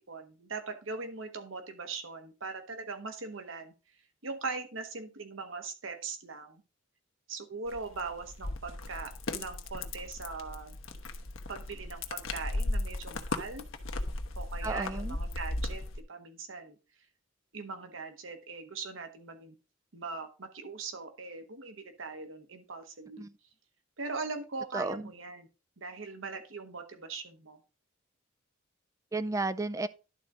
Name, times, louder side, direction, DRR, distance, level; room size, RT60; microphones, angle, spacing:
voice 1, 0.0-3.7 4.2-6.6 7.3-10.8 11.5-13.7 14.4-15.8 16.1-16.8 17.5-19.5 19.9-23.2 24.0-25.5 25.8-27.6, right 4 dB, 75° right, 1.2 m, -40 dB
sound 1, 7.7-16.0, left 2 dB, 85° left, 1.1 m, -36 dB
voice 2, 14.6-15.2 23.2-23.3 24.7-25.1 29.1-29.9, right 3 dB, 15° right, 0.4 m, -33 dB
11.5 x 4.0 x 4.8 m
head